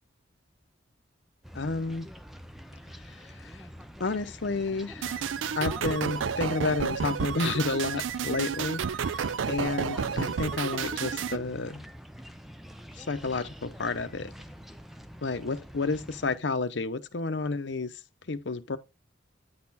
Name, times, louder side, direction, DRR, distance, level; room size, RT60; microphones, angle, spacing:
sound 1, 1.4-16.4, equal, ahead, 0.5 m, -46 dB
voice 1, 1.5-2.1 4.0-5.2 5.6-11.8 13.0-14.3 15.2-17.9 18.3-18.8, left 3 dB, 70° left, 0.8 m, -31 dB
sound 2, 5.0-11.4, right 6 dB, 90° right, 0.4 m, -31 dB
9.5 x 4.2 x 4.1 m
head